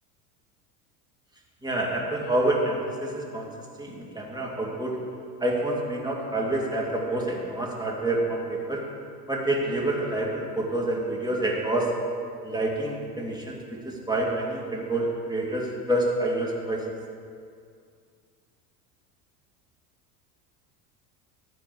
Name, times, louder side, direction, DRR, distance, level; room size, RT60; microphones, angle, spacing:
voice 1, 1.6-3.5 3.8-5.0 5.4-8.8 9.3-11.9 12.4-16.8, right 1 dB, 10° right, -2 dB, 2.4 m, -27 dB
13.0 x 4.5 x 8.2 m, 2.3 s
hypercardioid pair, 80°, 49 cm